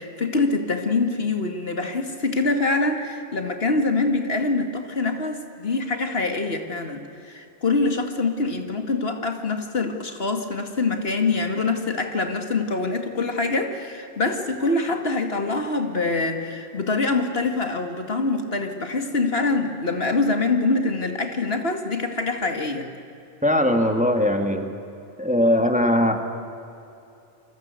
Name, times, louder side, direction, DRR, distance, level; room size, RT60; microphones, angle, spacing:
voice 1, 0.0-22.9, left 3 dB, 70° left, 5 dB, 2.3 m, -24 dB
voice 2, 23.4-24.7 25.2-26.2, left 1 dB, 5° right, 5 dB, 2.1 m, -20 dB
29.5 x 24.5 x 8.3 m, 2.7 s
omnidirectional pair, 1.1 m